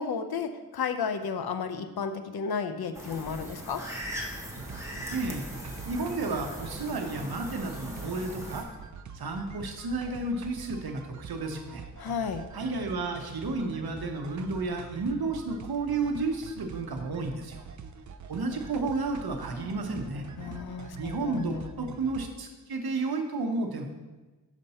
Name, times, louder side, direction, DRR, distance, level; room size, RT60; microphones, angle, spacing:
voice 1, 0.0-3.8 12.0-12.4 20.4-21.9, left 5 dB, 80° left, 8 dB, 0.6 m, -33 dB
sound 1, 2.9-8.6, equal, 10° right, 1.2 m, -40 dB
sound 2, 4.6-22.3, right 5 dB, 55° right, 0.4 m, -45 dB
voice 2, 5.1-5.5 5.9-8.7 9.1-11.8 12.5-17.6 18.3-20.2 21.0-23.8, right 3 dB, 80° right, 4 dB, 0.9 m, -32 dB
sound 3, 16.0-16.5 16.9-20.6, equal, 35° left, 2.1 m, -54 dB
6.6 x 5.2 x 4.2 m, 1.2 s
wide cardioid pair, 90°, 37 cm